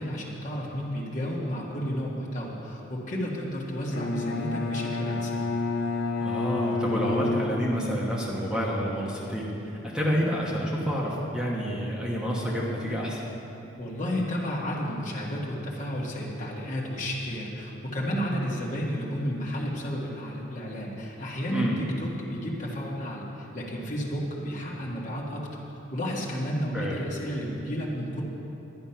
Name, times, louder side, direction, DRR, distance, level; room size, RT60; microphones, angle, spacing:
voice 1, 0.0-5.5 13.8-25.5 25.9-28.2, equal, 40° left, -4 dB, 1.8 m, -32 dB
Bowed string instrument, 3.9-8.1, left 3 dB, 70° left, 0.8 m, -29 dB
voice 2, 6.2-9.5 9.8-13.2 21.5-21.8 26.7-27.0, equal, 5° right, -5 dB, 1.2 m, -28 dB
11.0 x 9.5 x 5.8 m, 3.0 s
head